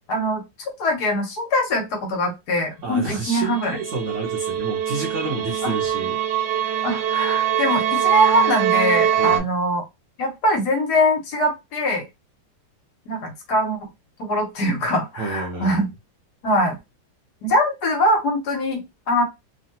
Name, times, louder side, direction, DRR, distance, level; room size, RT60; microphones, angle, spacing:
voice 1, 0.1-0.4 0.8-3.7 5.6-5.7 6.8-9.8 10.2-12.0 13.1-13.8 14.2-15.9 16.4-16.8 17.4-19.2, left 1 dB, 65° left, 3 dB, 1.3 m, -22 dB
voice 2, 2.8-6.2 9.2-9.5 15.2-15.8, right 3 dB, 55° right, 0 dB, 0.9 m, -30 dB
sound 1, 3.5-9.4, right 10 dB, 80° right, 1.2 m, -22 dB
3.2 x 2.1 x 2.8 m, 0.22 s
omnidirectional pair, 1.9 m